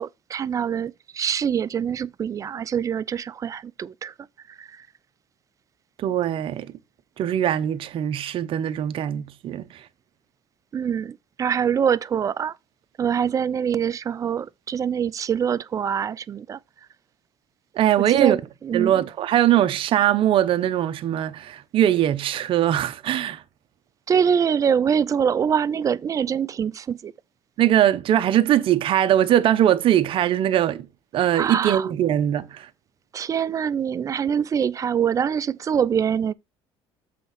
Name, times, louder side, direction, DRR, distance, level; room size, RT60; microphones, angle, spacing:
voice 1, 0.0-4.1 4.5-4.9 10.7-12.6 13.0-16.6 18.0-18.9 24.1-27.1 31.3-31.9 33.1-36.3, right 7 dB, 30° right, 0.4 m, -24 dB
voice 2, 6.0-6.7 7.2-9.8 17.7-18.4 18.7-23.4 27.6-30.9 31.1-32.7, right 11 dB, 55° right, 0.8 m, -21 dB
7.7 x 3.6 x 5.7 m
cardioid pair, 115°, 11 cm